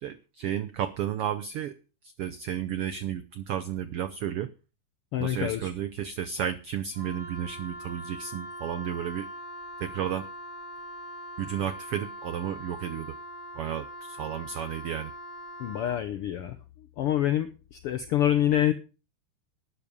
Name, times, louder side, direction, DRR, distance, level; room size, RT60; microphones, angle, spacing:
voice 1, 0.0-1.8 2.2-4.5 5.2-9.3 9.8-10.3 11.4-13.2 13.6-15.1, right 10 dB, 85° right, 12 dB, 1.3 m, -32 dB
voice 2, 5.1-5.7 15.6-16.6 17.0-18.7, left 12 dB, 80° left, 9 dB, 1.3 m, -26 dB
Wind instrument woodwind instrument, 6.9-16.0, equal, 10° left, 6.9 m, -42 dB
12.0 x 10.0 x 5.3 m, 0.33 s
omnidirectional pair, 3.6 m